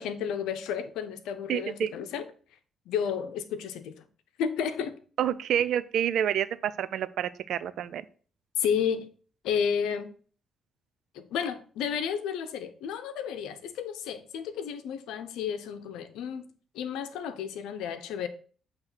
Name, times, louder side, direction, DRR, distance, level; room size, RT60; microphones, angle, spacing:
voice 1, 0.0-2.3 2.9-3.9 4.4-5.0 8.6-9.1 9.4-10.1 11.1-16.4 16.7-18.3, left 7 dB, 90° left, 0.8 m, -32 dB
voice 2, 1.5-1.9 5.2-8.1, right 10 dB, 75° right, 0.4 m, -28 dB
7.9 x 3.2 x 5.7 m
cardioid pair, 75°, 0 cm